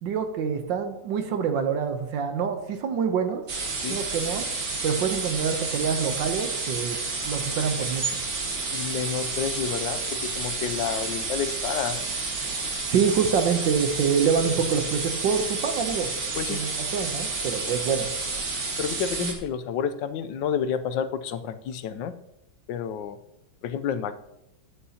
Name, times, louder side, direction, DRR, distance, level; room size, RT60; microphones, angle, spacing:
voice 1, 0.0-3.4 3.9-4.4 4.8-7.0 7.2-8.0 12.9-16.1 16.5-18.1 19.2-19.3, right 6 dB, 75° right, 7 dB, 1.5 m, -26 dB
sound 1, 3.5-19.3, right 3 dB, 50° right, 2.0 m, -30 dB
voice 2, 8.7-12.0 16.4-16.6 18.8-22.1 22.7-23.2 23.6-24.2, left 8 dB, 75° left, 11 dB, 1.3 m, -30 dB
14.0 x 9.7 x 2.9 m, 0.87 s
omnidirectional pair, 2.1 m